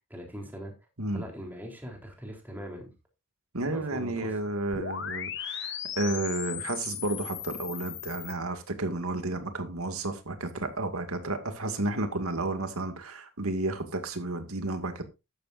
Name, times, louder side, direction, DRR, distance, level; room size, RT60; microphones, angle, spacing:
voice 1, 0.1-0.7 1.1-2.9 3.6-4.3, equal, 10° right, 1 dB, 3.7 m, -41 dB
voice 2, 3.5-15.0, right 2 dB, 90° right, 7 dB, 2.3 m, -32 dB
sound 1, 4.7-8.3, left 9 dB, 55° left, 1.6 m, -37 dB
13.5 x 11.5 x 2.6 m, 0.25 s
head